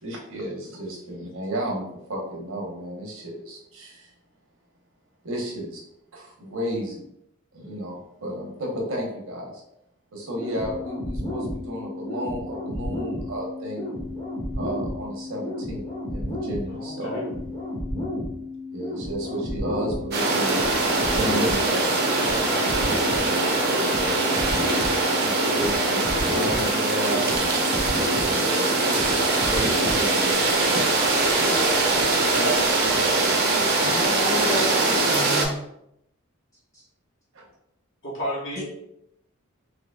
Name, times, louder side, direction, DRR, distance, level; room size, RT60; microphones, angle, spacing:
voice 1, 0.0-4.1 5.2-5.8 6.1-7.0 7.5-9.6 10.1-13.9 14.6-17.2 18.7-20.6 21.1-21.9 22.8-23.0 23.7-24.2 24.5-26.0 26.3-27.3 28.1-33.4 34.0-34.1 37.3-37.4, equal, 70° right, -1 dB, 1.0 m, -33 dB
sound 1, 10.3-30.3, left 1 dB, 35° left, 1.1 m, -32 dB
voice 2, 16.7-17.2 22.2-22.7 38.0-38.6, equal, 60° left, -5 dB, 1.3 m, -32 dB
sound 2, 20.1-35.4, right 3 dB, 50° right, 0.7 m, -22 dB
voice 3, 33.8-35.6 36.7-36.8 38.6-38.7, equal, 15° left, -4 dB, 0.3 m, -30 dB
3.9 x 2.8 x 2.3 m, 0.78 s
head